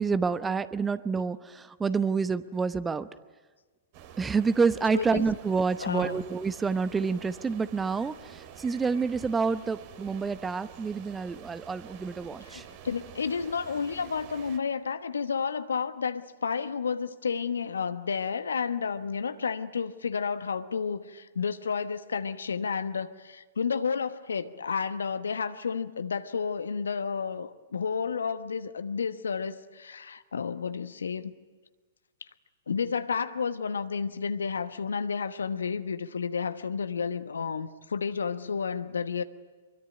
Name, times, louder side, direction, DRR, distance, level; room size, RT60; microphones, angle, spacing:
voice 1, 0.0-3.1 4.2-12.6, right 5 dB, 15° right, 0.9 m, -28 dB
sound 1, 3.9-14.6, right 9 dB, 45° right, 2.5 m, -48 dB
voice 2, 4.9-5.3 5.8-6.3 12.4-31.3 32.7-39.2, left 6 dB, 75° left, 1.2 m, -31 dB
25.0 x 23.0 x 9.3 m
figure-of-eight pair, 110°, 0 cm